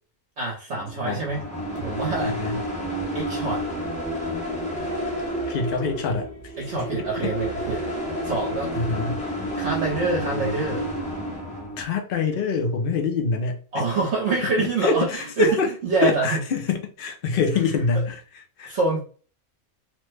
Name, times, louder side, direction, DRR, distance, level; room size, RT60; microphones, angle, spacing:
voice 1, 0.4-1.5 1.7-2.4 3.1-3.7 6.6-7.8 8.2-8.7 9.6-10.9 13.7-16.4 17.9-18.0 18.7-19.0, right 3 dB, 55° right, -3 dB, 1.0 m, -26 dB
sound 1, 0.8-11.8, equal, 10° left, 0.5 m, -30 dB
voice 2, 2.2-2.5 5.5-6.8 7.2-7.3 8.8-9.2 11.8-13.6 14.6-15.7 16.0-18.2 18.6-18.8, left 4 dB, 55° left, 3 dB, 0.6 m, -25 dB
3.0 x 2.1 x 3.2 m, 0.40 s
omnidirectional pair, 1.5 m